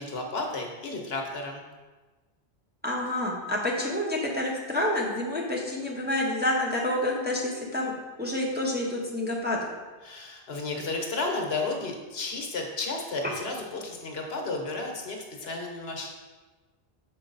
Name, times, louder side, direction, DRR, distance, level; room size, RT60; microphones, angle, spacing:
voice 1, 0.0-1.6 10.0-16.1, left 3 dB, 75° left, 1 dB, 1.2 m, -33 dB
voice 2, 2.8-7.9 8.2-9.7, left 1 dB, 10° right, -2 dB, 0.8 m, -28 dB
6.2 x 4.5 x 3.9 m, 1.3 s
omnidirectional pair, 1.1 m